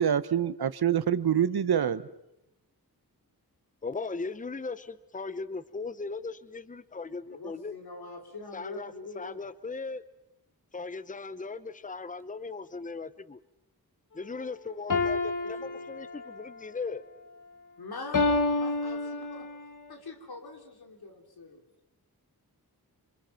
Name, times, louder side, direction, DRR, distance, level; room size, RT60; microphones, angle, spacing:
voice 1, 0.0-2.0, right 9 dB, 85° right, 15 dB, 1.0 m, -25 dB
voice 2, 3.8-7.7 8.5-10.0 10.7-13.4 14.1-17.0, left 4 dB, 20° left, 15 dB, 0.8 m, -38 dB
voice 3, 7.3-9.4 15.4-15.9 17.8-19.5 19.9-21.6, left 3 dB, 80° left, 4 dB, 3.6 m, -44 dB
sound 1, 14.9-16.5 18.1-19.6, left 3 dB, 55° left, 1.8 m, -28 dB
27.5 x 26.0 x 5.8 m, 0.85 s
wide cardioid pair, 110°, 37 cm